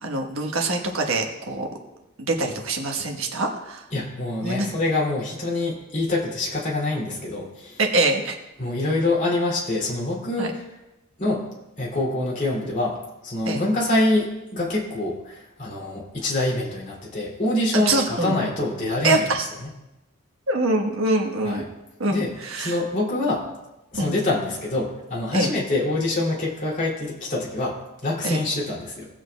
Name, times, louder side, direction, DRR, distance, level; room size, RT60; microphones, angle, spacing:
voice 1, 0.0-1.7 2.2-3.9 4.4-4.7 7.8-8.4 10.4-10.5 13.5-13.6 17.7-18.3 19.0-19.4 20.5-21.6 22.0-22.8 23.9-24.1 25.3-25.5 28.2-28.4, right 2 dB, 70° right, 2 dB, 1.3 m, -24 dB
voice 2, 3.9-7.8 8.6-10.6 11.2-11.5 11.8-19.2 21.4-21.6 22.1-22.3 22.6-23.4 23.9-29.1, left 2 dB, 40° left, -4 dB, 2.7 m, -25 dB
18.0 x 7.7 x 2.3 m, 0.98 s
head